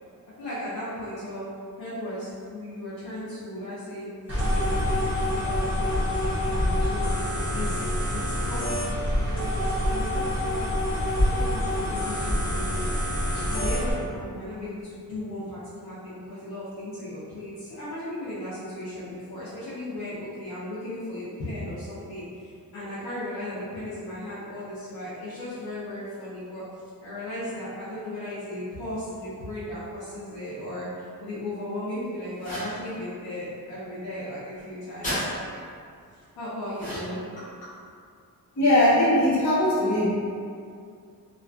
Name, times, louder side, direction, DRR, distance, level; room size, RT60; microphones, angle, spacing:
voice 1, 0.4-1.5 1.8-4.1 4.5-10.8 11.3-12.6 13.5-26.6 27.0-35.3 36.1-37.5, left 1 dB, 80° left, -12 dB, 0.7 m, -36 dB
sound 1, 4.3-13.9, left 1 dB, 5° right, 1.0 m, -26 dB
sound 2, 32.4-32.8 35.0-35.2 36.7-37.3, equal, 20° left, 0.7 m, -33 dB
voice 2, 38.6-40.0, left 1 dB, 50° left, -12 dB, 1.0 m, -20 dB
2.4 x 2.3 x 2.2 m, 2.3 s
wide cardioid pair, 175°, 37 cm